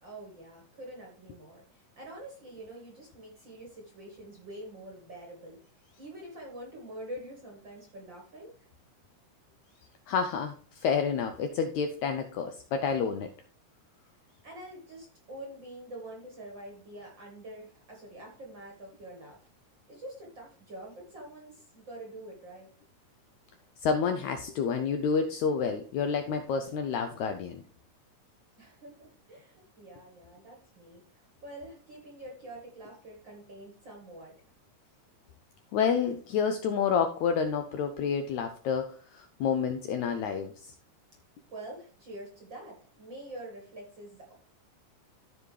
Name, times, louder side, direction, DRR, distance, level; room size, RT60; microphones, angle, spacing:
voice 1, 0.0-5.6 6.0-8.7 14.4-19.5 19.9-22.7 28.6-34.3 41.5-44.3, right 1 dB, 45° right, 0 dB, 1.6 m, -46 dB
voice 2, 10.1-10.5 10.8-13.3 23.8-27.6 35.7-40.5, left 6 dB, 80° left, 7 dB, 1.7 m, -29 dB
13.5 x 4.9 x 3.2 m, 0.44 s
omnidirectional pair, 4.0 m